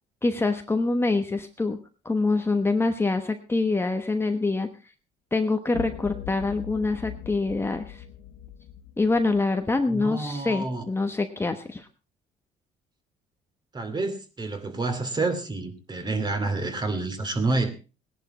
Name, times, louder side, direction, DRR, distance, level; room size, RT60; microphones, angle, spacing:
voice 1, 0.2-1.8 2.0-4.7 5.3-8.0 9.0-11.9, left 3 dB, 15° left, 6 dB, 1.1 m, -25 dB
sound 1, 5.7-10.1, left 11 dB, 85° left, 1.1 m, -41 dB
voice 2, 9.9-10.8 13.7-17.7, right 3 dB, 25° right, 8 dB, 2.7 m, -28 dB
18.0 x 11.0 x 4.2 m, 0.33 s
cardioid pair, 110°, 17 cm